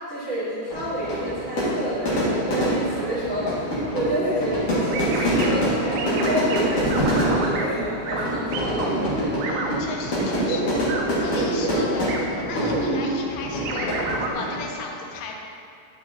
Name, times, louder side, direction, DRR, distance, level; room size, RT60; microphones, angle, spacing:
voice 1, 0.0-3.6 3.9-9.3, right 1 dB, 65° right, -12 dB, 1.2 m, -29 dB
Fire / Fireworks, 0.7-14.7, equal, 55° left, 1.7 m, -26 dB
sound 1, 4.9-5.5 6.0-6.6 6.9-7.7 8.1-8.3 8.5-9.8 10.1-11.0 11.4-11.8 12.1-12.2 12.6-13.1 13.7-14.3, right 3 dB, 85° right, 1.9 m, -29 dB
voice 2, 9.4-10.7 11.1-13.9 14.3-15.4, left 4 dB, 85° left, 0 dB, 3.2 m, -35 dB
8.7 x 7.7 x 2.7 m, 2.5 s
omnidirectional pair, 5.0 m